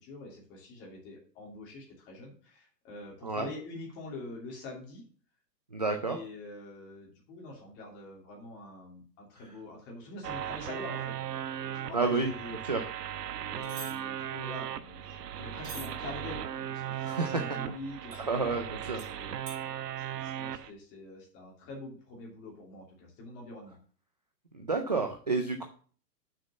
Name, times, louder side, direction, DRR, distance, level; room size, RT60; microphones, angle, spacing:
voice 1, 0.0-5.0 6.1-11.2 11.6-12.6 13.5-18.6 18.8-19.5 20.1-23.8, left 2 dB, 20° left, -1 dB, 2.8 m, -45 dB
voice 2, 5.7-6.2 11.9-12.3 12.6-12.8 17.0-17.4 18.2-19.0 24.5-25.6, right 3 dB, 30° right, 4 dB, 0.4 m, -30 dB
sound 1, 10.2-20.7, right 10 dB, 75° right, 1.1 m, -37 dB
sound 2, 13.6-13.9 15.6-15.9 18.1-18.2 19.0-19.1 19.5-19.6, right 4 dB, 55° right, 3.1 m, -43 dB
6.3 x 6.2 x 7.0 m, 0.42 s
hypercardioid pair, 170°, 49 cm